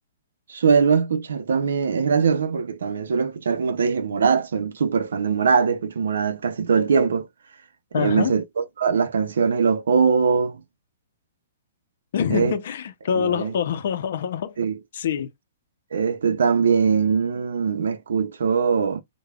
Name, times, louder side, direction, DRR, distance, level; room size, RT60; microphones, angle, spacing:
voice 1, 0.5-7.3 7.9-10.6 12.3-12.5 13.1-13.5 14.6-14.8 15.9-19.0, right 6 dB, 80° right, 0.5 m, -21 dB
voice 2, 7.9-8.3 12.1-14.6 14.9-15.3, left 8 dB, 65° left, 0.6 m, -25 dB
4.8 x 2.2 x 2.3 m
hypercardioid pair, 135°, 0 cm